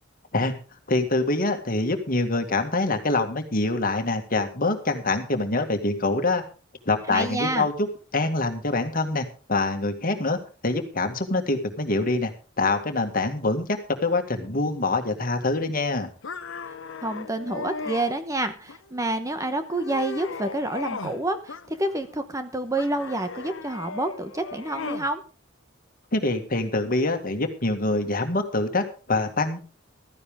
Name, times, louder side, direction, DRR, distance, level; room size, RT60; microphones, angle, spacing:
voice 1, 0.9-6.4 6.9-7.9 8.1-12.3 12.6-16.1 26.1-29.6, left 2 dB, 45° left, 6 dB, 1.9 m, -25 dB
voice 2, 7.1-7.7 17.0-25.2, right 1 dB, 15° right, 9 dB, 1.0 m, -28 dB
sound 1, 16.2-18.1 18.7-19.2 19.6-21.2 21.5-22.2 22.8-25.1, left 4 dB, 70° left, 1.0 m, -37 dB
15.5 x 13.5 x 3.6 m, 0.35 s
head